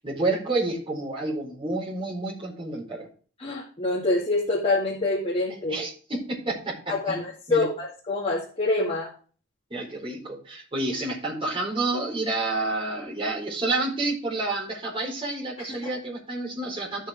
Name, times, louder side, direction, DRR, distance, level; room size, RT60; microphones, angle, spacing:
voice 1, 0.0-3.1 5.7-7.2 7.5-7.7 9.7-17.1, right 2 dB, 25° right, -4 dB, 4.4 m, -29 dB
voice 2, 3.4-5.8 6.9-9.1 15.6-15.8, left 2 dB, 30° left, -6 dB, 2.2 m, -26 dB
12.5 x 6.4 x 3.6 m, 0.41 s
head